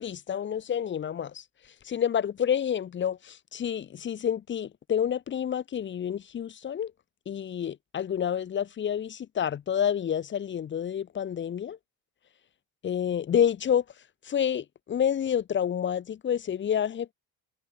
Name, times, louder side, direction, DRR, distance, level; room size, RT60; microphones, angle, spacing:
voice 1, 0.0-1.4 1.8-6.9 7.2-11.8 12.8-13.8 14.2-17.1, left 9 dB, 30° left, 1.6 m, -29 dB
cardioid pair, 140°, 36 cm